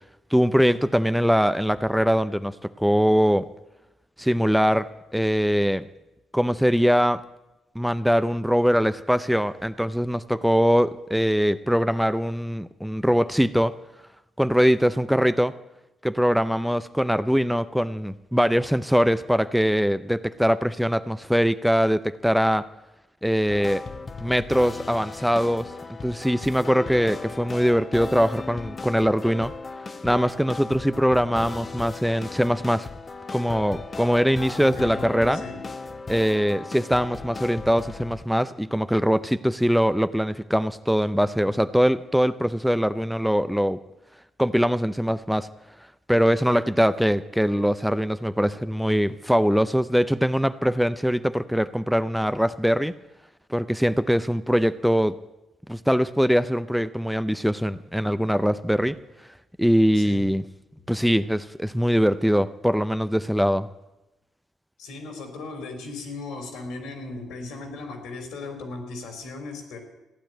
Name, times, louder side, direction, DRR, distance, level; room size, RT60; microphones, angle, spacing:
voice 1, 0.3-3.4 4.2-5.9 6.3-7.2 7.8-13.7 14.4-15.5 16.0-22.7 23.2-23.8 24.2-25.7 26.0-29.5 30.0-32.9 33.3-35.4 36.1-43.8 44.4-45.5 46.1-52.9 53.5-55.2 55.7-59.0 59.6-60.4 60.9-63.7, equal, ahead, 13 dB, 0.5 m, -22 dB
sound 1, 23.5-38.5, left 4 dB, 35° left, 1.0 m, -37 dB
voice 2, 34.4-35.1 35.3-35.6 59.9-60.3 64.8-69.8, left 3 dB, 85° left, 5 dB, 3.7 m, -37 dB
15.0 x 9.9 x 9.0 m, 0.99 s
cardioid pair, 90°, 0 cm